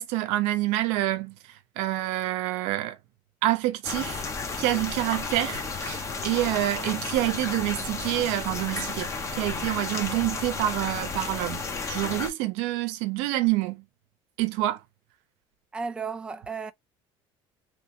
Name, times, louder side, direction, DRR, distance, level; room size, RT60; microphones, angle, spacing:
voice 1, 0.0-1.3 1.8-3.0 3.4-4.2 4.6-11.6 11.9-13.8 14.4-14.8, right 16 dB, 80° right, 0.7 m, -27 dB
sound 1, 3.8-12.3, left 4 dB, 30° left, 0.9 m, -33 dB
voice 2, 15.7-16.7, right 5 dB, 10° right, 0.3 m, -33 dB
3.1 x 2.4 x 3.5 m
cardioid pair, 130°, 11 cm